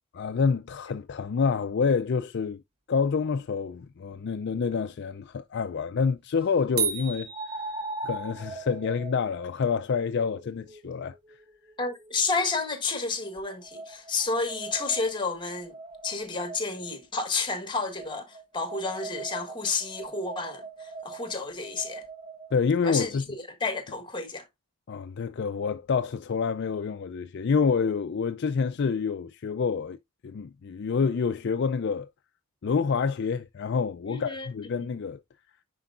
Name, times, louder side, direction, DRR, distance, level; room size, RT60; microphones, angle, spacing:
voice 1, 0.1-2.6 2.9-7.3 8.0-11.2 22.5-23.3 24.9-30.0 30.2-32.1 32.6-35.2, left 5 dB, 50° left, 0.4 m, -27 dB
sound 1, 4.7-4.8 7.3-12.5 13.2-16.9 17.9-22.5, right 3 dB, 25° right, 0.8 m, -41 dB
sound 2, 6.8-8.4, right 7 dB, 80° right, 2.7 m, -32 dB
voice 2, 11.8-15.7 16.0-22.0 22.8-23.2 23.6-24.4 34.1-34.5 34.7-34.9, left 4 dB, 20° left, 1.4 m, -31 dB
9.7 x 4.6 x 2.4 m
head